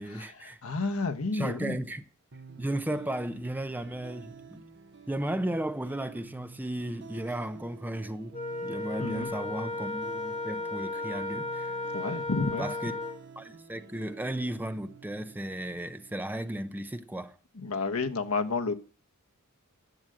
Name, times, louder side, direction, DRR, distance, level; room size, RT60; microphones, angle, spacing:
voice 1, 0.0-0.6 1.3-2.0 2.6-4.6 5.1-11.8 12.6-12.9 13.4-17.4, right 1 dB, 10° right, 0.6 m, -35 dB
voice 2, 0.6-1.8 9.0-9.3 11.9-12.7 17.6-18.7, left 3 dB, 75° left, 1.2 m, -30 dB
sound 1, 2.3-17.3, right 5 dB, 55° right, 1.1 m, -50 dB
Wind instrument woodwind instrument, 8.3-13.2, left 2 dB, 30° left, 1.9 m, -35 dB
10.5 x 7.9 x 7.7 m
head